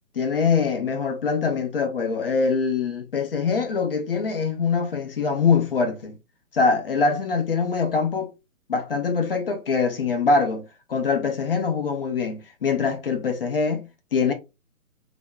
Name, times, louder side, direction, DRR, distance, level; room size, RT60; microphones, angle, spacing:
voice 1, 0.2-6.2 6.5-8.3 8.7-14.3, left 5 dB, 45° left, 0.5 m, -23 dB
3.3 x 2.4 x 2.3 m
hypercardioid pair, 150°, 42 cm